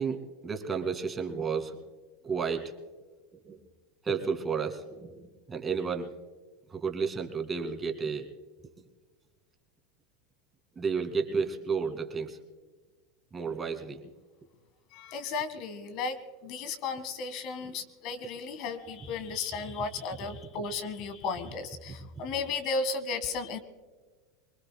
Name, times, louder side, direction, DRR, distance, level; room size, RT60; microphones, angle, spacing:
voice 1, 0.0-1.8 2.2-2.8 3.4-3.6 4.0-6.2 6.7-8.3 10.8-12.4 13.3-14.1 17.6-17.7 20.5-20.6 21.9-22.3, right 5 dB, 20° right, 4 dB, 2.2 m, -32 dB
voice 2, 14.9-23.6, left 4 dB, 55° left, 10 dB, 1.7 m, -34 dB
25.0 x 21.0 x 2.2 m, 1.4 s
hypercardioid pair, 100°, 0 cm